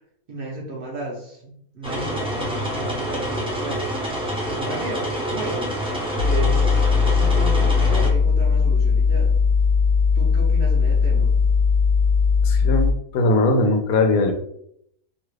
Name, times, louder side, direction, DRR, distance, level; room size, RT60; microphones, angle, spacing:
voice 1, 0.3-3.9 4.5-5.8 6.2-9.4 10.1-11.4, right 2 dB, 55° right, -3 dB, 0.7 m, -33 dB
sound 1, 1.8-8.1, equal, 5° right, 0.4 m, -27 dB
sound 2, 6.2-12.9, left 5 dB, 75° right, 1.0 m, -18 dB
voice 2, 12.4-14.3, left 2 dB, 90° left, 4 dB, 1.1 m, -20 dB
2.8 x 2.3 x 3.1 m, 0.72 s
omnidirectional pair, 1.4 m